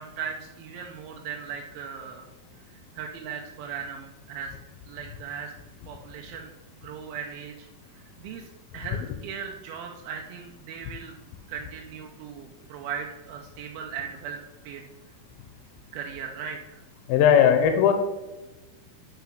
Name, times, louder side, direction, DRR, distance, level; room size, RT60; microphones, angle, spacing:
voice 1, 0.0-2.2 2.7-4.5 4.8-5.5 5.9-6.5 6.8-7.7 8.2-8.5 8.7-11.2 11.5-14.4 14.6-14.8 15.9-16.8, right 7 dB, 90° right, 2 dB, 2.5 m, -38 dB
voice 2, 17.1-17.9, left 8 dB, 85° left, 7 dB, 2.4 m, -18 dB
6.0 x 5.8 x 5.7 m, 1.1 s
omnidirectional pair, 4.2 m